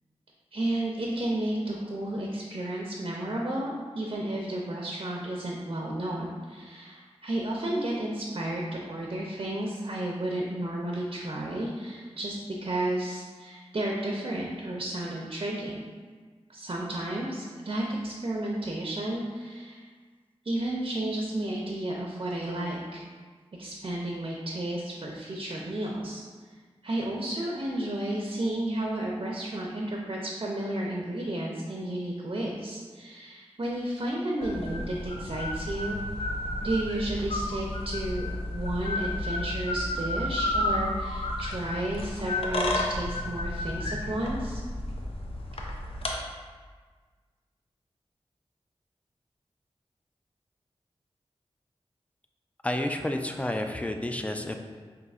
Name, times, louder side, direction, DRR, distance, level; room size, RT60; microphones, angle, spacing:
voice 1, 0.5-15.8 16.5-19.9 20.4-23.0 23.6-26.2 26.8-36.0 36.6-44.6, right 1 dB, 50° right, -2 dB, 0.5 m, -32 dB
sound 1, 34.4-46.1, left 1 dB, 60° left, 0.5 m, -32 dB
voice 2, 52.6-54.6, left 1 dB, 10° left, 5 dB, 0.4 m, -30 dB
5.3 x 2.7 x 2.4 m, 1.5 s
cardioid pair, 45°, 11 cm